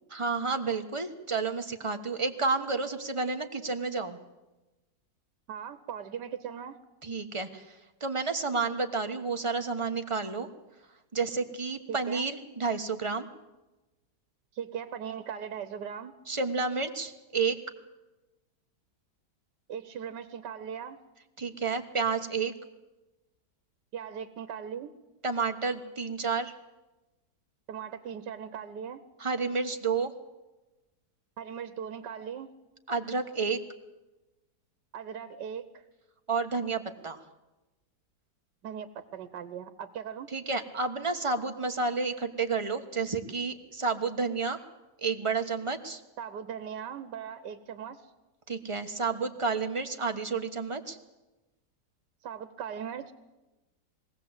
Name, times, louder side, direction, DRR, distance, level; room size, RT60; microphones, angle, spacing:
voice 1, 0.1-4.2 7.0-7.7 8.0-10.5 11.1-13.3 16.3-17.6 21.4-22.5 25.2-26.5 29.2-30.1 32.9-33.6 36.3-37.2 40.3-44.6 45.0-46.0 48.5-51.0, right 4 dB, 20° right, 6 dB, 1.1 m, -30 dB
voice 2, 5.5-6.8 11.9-12.3 14.5-16.1 19.7-21.0 23.9-24.9 27.7-29.0 31.4-32.5 34.9-35.8 38.6-40.3 46.2-48.1 52.2-53.1, right 8 dB, 80° right, 11 dB, 1.6 m, -39 dB
22.0 x 16.5 x 8.1 m, 1.1 s
omnidirectional pair, 1.8 m